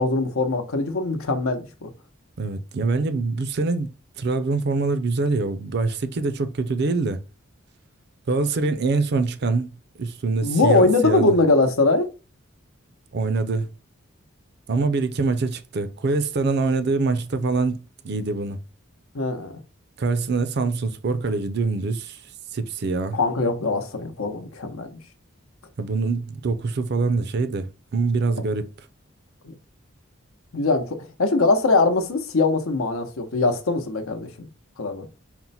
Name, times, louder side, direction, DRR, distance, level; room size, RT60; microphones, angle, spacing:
voice 1, 0.0-1.9 10.4-12.1 19.1-19.5 23.1-24.9 29.4-29.5 30.5-34.5 34.8-35.1, left 3 dB, 80° left, 0.8 m, -22 dB
voice 2, 2.4-3.9 4.2-7.2 8.3-9.7 10.0-11.3 13.1-13.7 14.7-18.6 20.0-22.2 22.5-23.2 25.8-28.9, right 3 dB, 50° right, 0.4 m, -24 dB
4.3 x 2.1 x 4.1 m
head